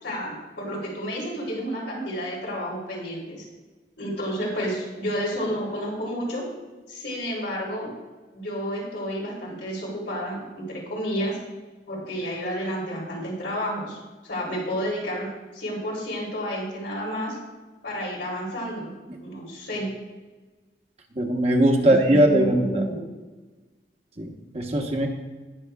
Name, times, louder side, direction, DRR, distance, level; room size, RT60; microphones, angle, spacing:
voice 1, 0.0-3.4 4.0-6.5 6.9-7.9 8.3-11.4 11.9-14.0 14.2-15.3 15.5-17.4 17.8-18.9 19.2-19.9 21.8-23.0, equal, 85° left, -4 dB, 3.2 m, -30 dB
voice 2, 21.1-22.8 24.2-24.3 24.5-25.1, right 1 dB, 35° right, 2 dB, 0.9 m, -20 dB
18.5 x 6.3 x 2.3 m, 1.3 s
head